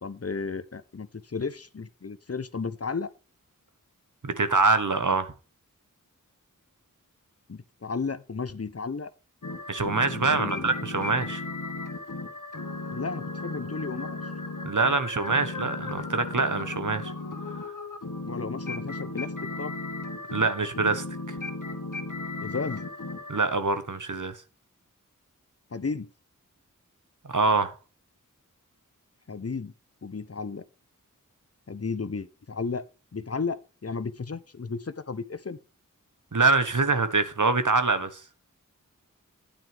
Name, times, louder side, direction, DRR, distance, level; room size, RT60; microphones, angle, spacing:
voice 1, 0.0-3.1 7.5-9.1 10.2-10.7 12.9-14.2 18.3-19.3 19.6-19.7 22.4-22.9 25.7-26.1 29.3-29.7 30.0-30.6 31.7-32.9 33.1-35.6, left 4 dB, 45° left, 0.7 m, -33 dB
voice 2, 4.2-5.3 9.7-11.4 14.6-17.1 20.3-21.4 23.3-24.4 27.3-27.7 36.3-38.2, right 3 dB, 70° right, 1.3 m, -25 dB
sound 1, 9.4-23.4, left 3 dB, 70° left, 1.5 m, -36 dB
10.0 x 9.2 x 3.4 m
wide cardioid pair, 45°, 32 cm